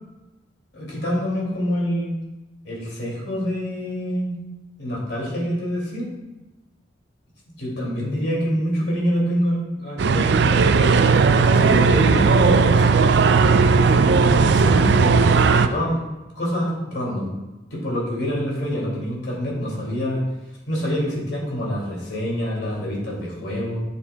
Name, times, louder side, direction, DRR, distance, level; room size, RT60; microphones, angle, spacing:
voice 1, 0.7-2.1 2.6-4.4 4.8-6.1 7.6-10.7 11.4-13.1 13.7-15.2 15.5-16.0 16.3-17.3 17.7-20.2 20.7-23.8, equal, 65° left, -4 dB, 2.5 m, -26 dB
sound 1, 10.0-15.7, right 4 dB, 65° right, 0.4 m, -16 dB
10.0 x 6.8 x 2.3 m, 1.1 s
head